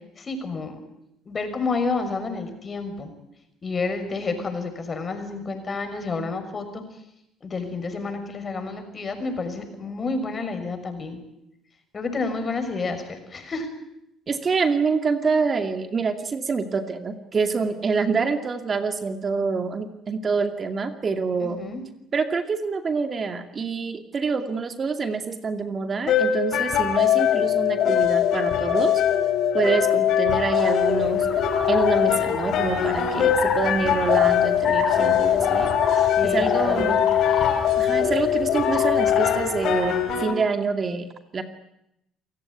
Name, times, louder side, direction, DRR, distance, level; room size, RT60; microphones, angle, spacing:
voice 1, 0.2-0.8 1.3-3.1 3.6-6.8 7.4-11.2 11.9-13.7 21.4-21.8 36.0-37.0, left 3 dB, 35° left, 7 dB, 6.1 m, -30 dB
voice 2, 14.3-21.6 22.1-28.9 29.5-31.3 31.7-35.7 36.2-37.0 37.8-41.4, right 4 dB, 40° right, 7 dB, 2.4 m, -26 dB
sound 1, 26.1-40.3, left 9 dB, 70° left, 3.7 m, -22 dB
sound 2, 30.3-40.0, left 5 dB, 50° left, 6.5 m, -30 dB
28.0 x 16.5 x 9.8 m, 0.82 s
supercardioid pair, 75°, 0 cm